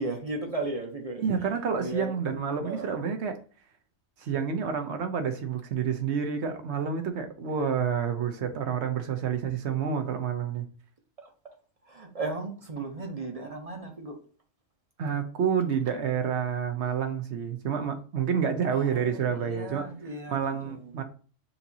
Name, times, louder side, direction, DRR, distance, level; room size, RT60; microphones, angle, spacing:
voice 1, 0.0-1.2 1.8-2.1 2.6-2.9 11.2-11.3 11.9-14.1 18.7-21.0, right 2 dB, 35° right, 0.8 m, -36 dB
voice 2, 1.2-3.4 4.2-10.7 15.0-19.9 20.3-21.0, right 7 dB, 65° right, 1.0 m, -29 dB
6.9 x 2.8 x 2.7 m
omnidirectional pair, 1.3 m